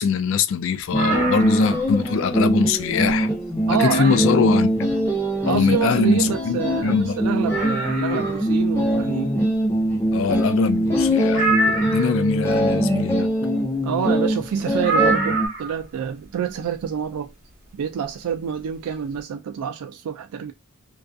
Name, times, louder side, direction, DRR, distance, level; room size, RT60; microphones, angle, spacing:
voice 1, 0.0-3.3 3.7-4.9 5.5-7.3 10.1-13.3, left 5 dB, 60° left, 0.3 m, -23 dB
sound 1, 0.9-15.5, equal, 10° left, 0.6 m, -22 dB
sound 2, 0.9-2.0 2.4-2.5 3.0-3.1 3.8-4.4 6.2-6.3 6.4-6.5 7.0-7.1 7.5-8.5 11.3-12.3 14.8-15.8 17.1-17.2, right 2 dB, 40° right, 1.0 m, -26 dB
voice 2, 3.7-4.2 5.5-9.3 13.8-17.3 17.7-20.5, right 8 dB, 85° right, 0.3 m, -27 dB
2.5 x 2.3 x 2.3 m
head